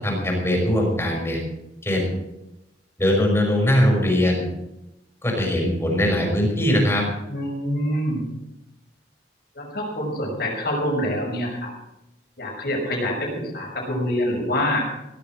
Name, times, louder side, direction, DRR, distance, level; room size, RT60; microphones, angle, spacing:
voice 1, 0.0-1.4 1.8-2.1 3.0-4.4 5.2-7.0, left 1 dB, 15° left, 0 dB, 5.6 m, -21 dB
voice 2, 7.3-8.2 9.5-11.7 12.4-14.9, equal, 60° left, 0 dB, 6.1 m, -26 dB
17.5 x 12.5 x 4.8 m, 0.91 s
head